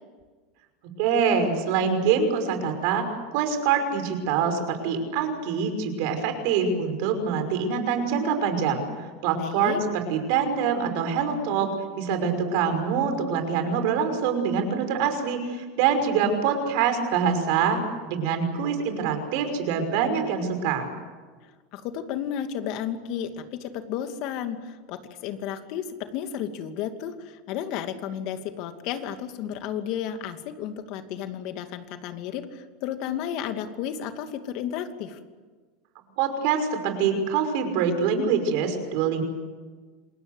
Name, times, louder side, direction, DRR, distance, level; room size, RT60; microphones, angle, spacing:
voice 1, 1.0-3.1 3.3-8.8 9.2-17.8 18.1-20.9 36.2-39.2, right 6 dB, 65° right, 7 dB, 5.7 m, -25 dB
voice 2, 9.4-9.8 21.4-35.2, left 9 dB, 55° left, 7 dB, 2.6 m, -33 dB
27.5 x 20.5 x 8.2 m, 1.4 s
supercardioid pair, 125°, 0 cm